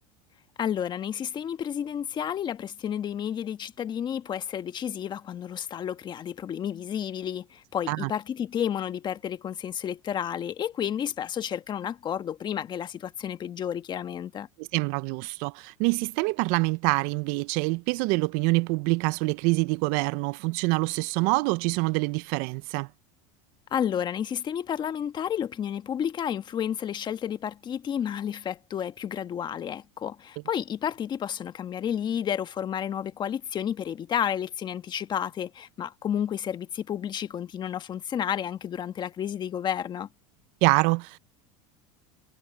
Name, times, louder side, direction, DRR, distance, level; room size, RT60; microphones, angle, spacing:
voice 1, 0.6-14.5 23.7-40.1, left 9 dB, 25° left, 1.4 m, -31 dB
voice 2, 14.6-22.9 40.6-41.2, right 25 dB, 55° right, 0.4 m, -26 dB
supercardioid pair, 140°, 16 cm